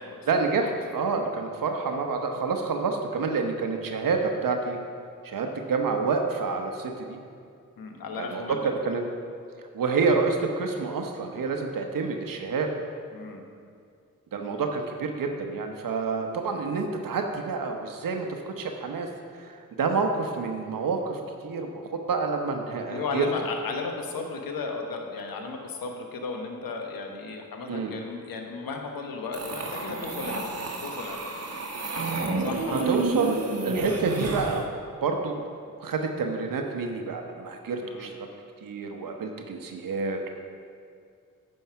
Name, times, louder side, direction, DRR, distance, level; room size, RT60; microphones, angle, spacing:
voice 1, 0.3-4.8 5.2-7.2 8.2-9.0 9.7-12.7 14.3-19.1 19.4-23.2 27.7-27.9 32.7-33.4 33.6-34.6 35.0-35.4 35.8-38.3 38.6-40.3, right 4 dB, 70° right, 3 dB, 0.9 m, -28 dB
voice 2, 1.1-1.4 7.8-8.7 13.1-13.4 22.9-30.5 30.8-31.3 32.4-33.0 37.8-38.1, left 4 dB, 80° left, 3 dB, 1.1 m, -35 dB
sound 1, 29.3-34.6, right 3 dB, 45° right, 1.3 m, -30 dB
9.0 x 5.6 x 5.8 m, 2.3 s
cardioid pair, 55°, 35 cm